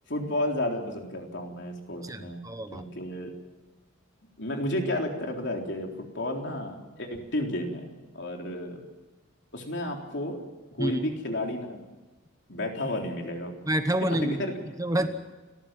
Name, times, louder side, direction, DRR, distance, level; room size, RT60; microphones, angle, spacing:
voice 1, 0.1-2.4 2.7-3.3 4.4-5.9 6.1-7.9 8.1-8.8 9.5-10.4 10.7-11.8 12.5-13.6 14.1-14.5 15.0-15.1, left 1 dB, 60° left, 2 dB, 3.9 m, -32 dB
voice 2, 2.0-2.8 10.8-11.0 13.7-14.3 14.8-15.1, right 1 dB, 15° right, 9 dB, 1.0 m, -28 dB
29.5 x 14.5 x 7.6 m, 1.2 s
head